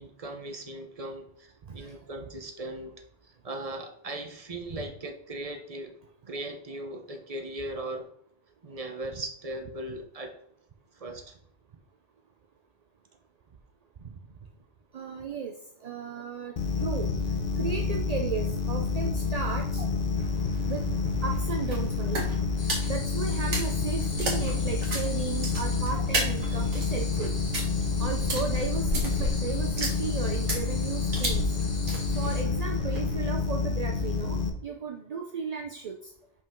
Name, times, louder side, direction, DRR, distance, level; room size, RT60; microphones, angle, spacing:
voice 1, 0.0-2.9 3.2-6.0 6.3-8.1 8.6-10.4 10.9-11.4 19.8-19.9 25.9-26.0, right 1 dB, 35° right, 4 dB, 0.9 m, -38 dB
voice 2, 14.9-15.5 15.8-16.5 16.8-17.1 17.6-19.9 20.7-22.2 22.9-27.3 28.0-31.4 32.1-36.1, right 5 dB, 50° right, 2 dB, 0.5 m, -35 dB
sound 1, 16.6-34.5, left 4 dB, 50° left, 0.9 m, -29 dB
sound 2, 20.2-33.2, right 1 dB, 75° right, 2.0 m, -35 dB
sound 3, 22.6-32.4, left 3 dB, 75° left, 1.7 m, -43 dB
5.5 x 5.0 x 3.6 m, 0.69 s
omnidirectional pair, 1.2 m